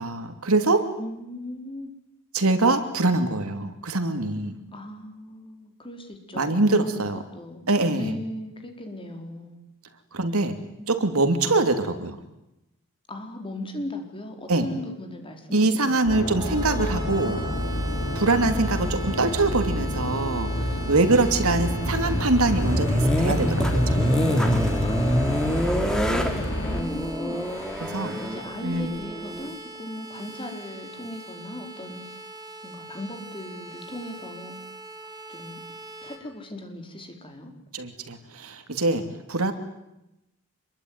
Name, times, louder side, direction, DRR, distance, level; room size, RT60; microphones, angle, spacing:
voice 1, 0.0-0.9 2.3-4.6 6.3-7.2 7.7-8.2 10.1-10.6 10.9-12.2 14.5-14.7 15.5-17.4 18.1-24.2 26.1-26.4 27.8-28.2 28.6-28.9 37.7-39.5, right 2 dB, 75° right, 8 dB, 2.9 m, -24 dB
voice 2, 1.0-1.9 4.7-7.0 7.3-7.6 7.9-9.6 10.8-11.0 13.1-16.4 24.8-25.9 26.3-27.4 28.0-32.0 32.6-34.6 35.3-35.6 36.0-37.5, left 1 dB, 25° left, 4 dB, 4.5 m, -38 dB
sound 1, 16.1-26.8, left 1 dB, 65° left, 5.2 m, -29 dB
sound 2, 16.4-36.2, right 2 dB, 20° right, 3.9 m, -41 dB
sound 3, 21.7-29.5, equal, 5° left, 3.1 m, -25 dB
27.0 x 22.5 x 9.7 m, 0.91 s
head